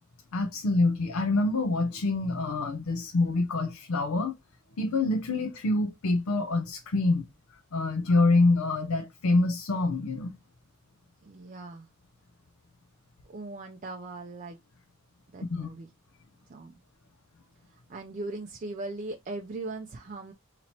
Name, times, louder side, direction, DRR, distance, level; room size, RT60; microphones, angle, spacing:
voice 1, 0.3-4.3 4.8-7.3 7.7-10.3 15.5-15.7, left 2 dB, 80° left, 0.5 m, -26 dB
voice 2, 11.2-11.9 13.3-14.6 15.3-15.9 16.5-16.7 17.7-20.3, right 2 dB, 35° right, 0.3 m, -39 dB
2.9 x 2.8 x 4.2 m
head